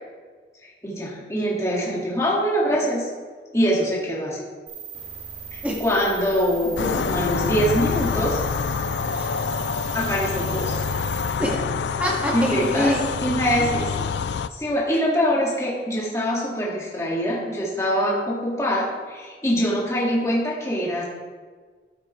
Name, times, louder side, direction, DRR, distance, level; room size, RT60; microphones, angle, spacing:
voice 1, 0.6-3.1 3.5-4.4 5.5-8.4 9.9-10.8 12.3-12.9 13.2-13.9 14.5-21.0, equal, 15° left, -5 dB, 2.3 m, -24 dB
sound 1, 4.7-11.3, right 7 dB, 35° right, 2.7 m, -38 dB
sound 2, 6.8-14.5, left 6 dB, 75° left, 0.4 m, -26 dB
voice 2, 9.1-9.5 11.4-13.0 13.7-13.8, equal, 10° right, -4 dB, 2.1 m, -26 dB
13.5 x 8.0 x 3.4 m, 1.5 s
head